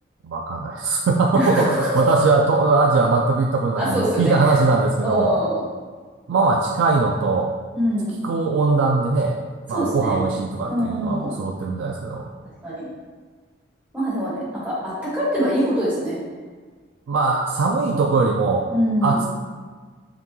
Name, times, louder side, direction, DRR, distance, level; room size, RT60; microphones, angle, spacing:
voice 1, 0.2-5.3 6.3-7.5 8.2-9.4 9.7-12.2 17.1-18.7 19.0-19.3, right 3 dB, 90° right, 0 dB, 0.3 m, -20 dB
voice 2, 1.3-2.2 3.8-4.3 5.0-5.6 7.7-8.2 9.7-10.2 10.7-11.3 12.4-12.8 13.9-16.2 18.7-19.2, equal, 10° right, -10 dB, 1.2 m, -23 dB
5.7 x 2.3 x 3.0 m, 1.5 s
head